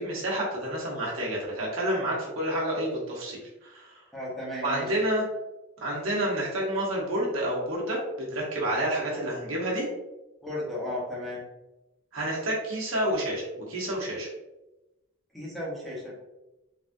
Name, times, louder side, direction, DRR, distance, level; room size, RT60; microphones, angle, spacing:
voice 1, 0.0-4.0 4.6-5.2 5.8-9.9 12.1-14.3, right 1 dB, 65° right, -4 dB, 1.0 m, -29 dB
voice 2, 4.1-4.9 10.4-11.4 15.3-16.2, left 1 dB, ahead, -7 dB, 0.8 m, -34 dB
3.5 x 2.4 x 2.6 m, 0.99 s
head